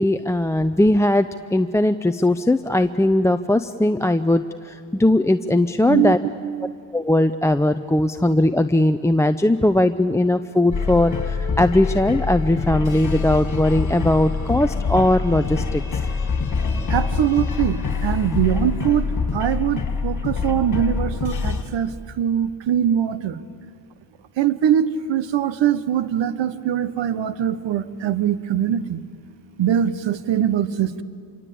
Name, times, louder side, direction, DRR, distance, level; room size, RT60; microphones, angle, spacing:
voice 1, 0.0-4.4 5.0-6.2 6.9-15.8, left 1 dB, 5° left, 8 dB, 0.6 m, -19 dB
voice 2, 6.4-6.7 16.9-19.1 19.3-21.9 22.2-23.4 24.4-29.0 29.6-31.0, right 10 dB, 65° right, 14 dB, 1.3 m, -22 dB
sound 1, 10.7-21.6, left 5 dB, 40° left, 3.1 m, -25 dB
26.5 x 23.5 x 8.6 m, 2.2 s
cardioid pair, 80°, 47 cm